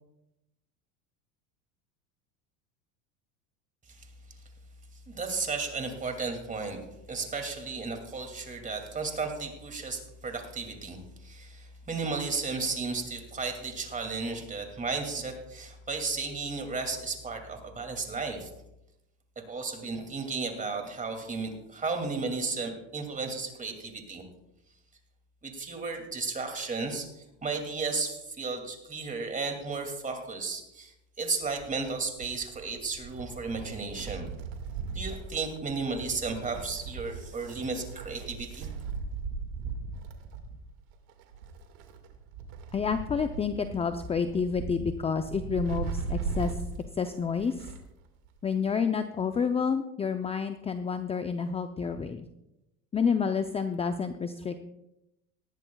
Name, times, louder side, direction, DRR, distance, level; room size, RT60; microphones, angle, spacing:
voice 1, 5.1-6.8 7.1-18.5 19.5-24.2 25.4-30.9 31.2-34.3 34.9-38.7, right 4 dB, 20° right, 4 dB, 2.5 m, -34 dB
Wind, 31.3-47.9 48.2-48.3 49.3-49.4, right 4 dB, 65° right, 2.0 m, -38 dB
voice 2, 42.7-46.6 46.9-47.7 48.4-52.3 52.9-54.6, left 6 dB, 15° left, 9 dB, 0.6 m, -29 dB
19.0 x 14.0 x 2.3 m, 0.90 s
supercardioid pair, 105°, 38 cm